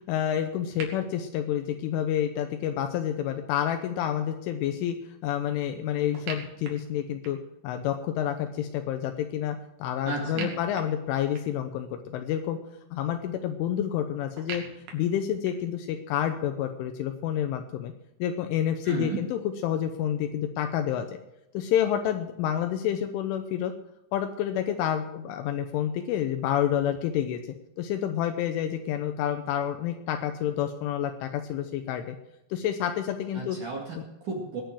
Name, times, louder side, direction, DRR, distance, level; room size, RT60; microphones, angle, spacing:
voice 1, 0.1-7.4 7.6-12.6 12.9-14.6 14.9-17.9 18.2-21.1 21.5-23.7 24.1-27.4 27.8-32.2 32.5-33.6 34.0-34.1, left 10 dB, 85° left, 6 dB, 3.4 m, -29 dB
sound 1, 0.8-0.9 6.2-7.6 10.3-11.7 14.4-15.8, right 5 dB, 85° right, 4.9 m, -41 dB
voice 2, 10.0-10.6 18.8-19.2 33.3-34.6, right 4 dB, 50° right, -2 dB, 3.0 m, -33 dB
21.0 x 7.0 x 7.7 m, 0.88 s
omnidirectional pair, 5.5 m